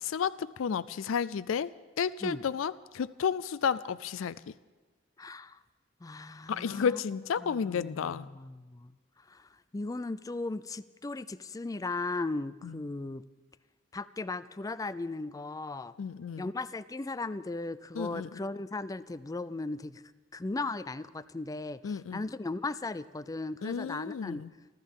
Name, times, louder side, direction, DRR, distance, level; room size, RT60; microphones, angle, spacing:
voice 1, 0.0-1.7 2.0-4.5 6.5-8.3 12.6-12.8 16.0-16.4 18.0-18.3 21.8-22.2 23.6-24.5, left 7 dB, 80° left, 16 dB, 0.4 m, -32 dB
voice 2, 5.2-5.6 6.0-7.0 7.4-8.9 9.2-13.2 13.9-15.9 16.4-20.0 20.3-24.4, left 3 dB, 20° left, 15 dB, 0.4 m, -37 dB
28.5 x 13.0 x 3.7 m, 1.3 s
head